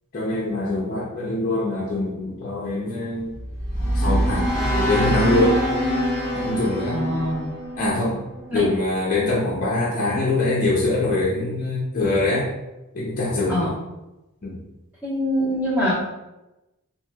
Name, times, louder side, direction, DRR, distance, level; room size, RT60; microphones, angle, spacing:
voice 1, 0.1-3.4 3.9-5.6 6.3-7.0 7.8-8.2 8.5-12.5 12.9-13.7 14.4-14.6, left 2 dB, 40° left, -5 dB, 0.5 m, -23 dB
sound 1, 3.3-8.5, equal, 15° left, 1.5 m, -24 dB
voice 2, 6.9-7.5 8.5-8.7 13.5-13.7 15.0-15.9, equal, 10° right, -9 dB, 1.1 m, -24 dB
3.0 x 2.8 x 2.3 m, 0.97 s
head